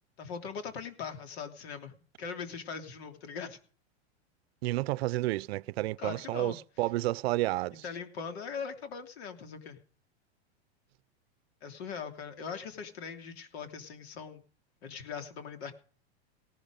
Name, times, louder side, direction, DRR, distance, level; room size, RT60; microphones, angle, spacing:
voice 1, 0.2-3.6 6.0-6.6 7.7-9.8 11.6-14.4 14.8-15.7, left 6 dB, 70° left, 3.2 m, -41 dB
voice 2, 4.6-7.8, right 18 dB, 70° right, 0.6 m, -31 dB
18.0 x 11.5 x 5.2 m
supercardioid pair, 140°, 32 cm